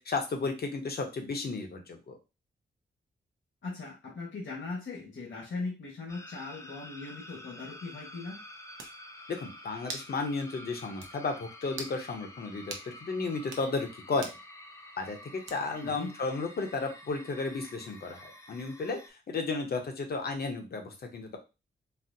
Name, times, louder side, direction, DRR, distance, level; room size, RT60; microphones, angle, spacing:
voice 1, 0.0-2.2 9.3-14.3 15.0-21.4, left 3 dB, 55° left, 4 dB, 0.7 m, -34 dB
voice 2, 3.6-8.4 15.8-16.1, left 3 dB, 70° left, -4 dB, 1.2 m, -39 dB
sound 1, 6.1-19.1, left 1 dB, 15° left, 0.4 m, -49 dB
sound 2, 8.8-9.0 9.9-10.1 10.5-10.6 11.0-11.1 11.7-12.0 12.7-12.9 13.4-13.7 14.2-14.4 15.5-15.8, right 3 dB, 85° right, 0.6 m, -41 dB
4.1 x 2.0 x 2.6 m, 0.28 s
wide cardioid pair, 155°, 20 cm